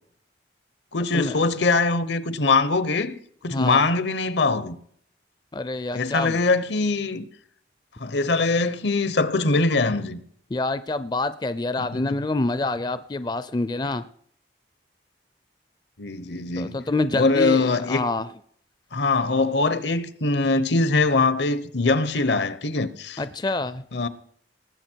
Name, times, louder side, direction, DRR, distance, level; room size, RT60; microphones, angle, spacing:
voice 1, 0.9-3.2 3.4-4.8 5.9-7.3 8.0-10.2 11.8-12.2 16.0-16.8 17.1-18.0 18.9-23.2 23.9-24.1, left 3 dB, 70° left, 0.9 m, -22 dB
voice 2, 5.5-6.4 10.5-14.0 16.6-18.2 23.2-23.8, left 2 dB, 25° left, 0.4 m, -26 dB
19.5 x 8.2 x 4.5 m
head